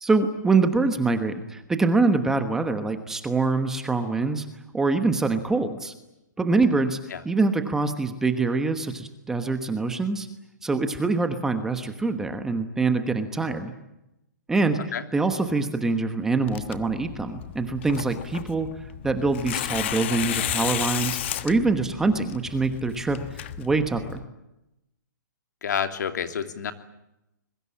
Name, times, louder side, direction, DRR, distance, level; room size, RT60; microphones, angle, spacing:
voice 1, 0.0-4.5 4.7-5.9 6.4-7.0 7.2-10.3 10.6-13.7 14.5-14.8 15.1-18.7 19.0-24.2, right 3 dB, 5° right, 8 dB, 1.1 m, -24 dB
Tearing, 16.5-24.2, left 12 dB, 35° left, 1.2 m, -33 dB
voice 2, 25.6-26.7, left 7 dB, 65° left, 7 dB, 2.9 m, -28 dB
25.0 x 23.0 x 8.6 m, 0.90 s
hypercardioid pair, 170°, 10 cm